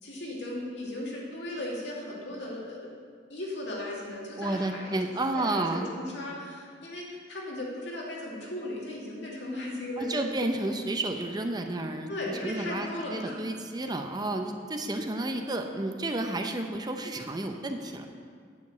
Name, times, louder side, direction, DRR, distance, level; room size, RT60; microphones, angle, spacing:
voice 1, 0.0-2.9 3.3-10.3 12.1-13.4, left 1 dB, 80° left, -4 dB, 2.4 m, -37 dB
voice 2, 4.4-5.9 10.0-12.1 12.4-18.1, right 2 dB, 25° right, 5 dB, 0.6 m, -31 dB
9.5 x 5.2 x 7.9 m, 2.1 s
head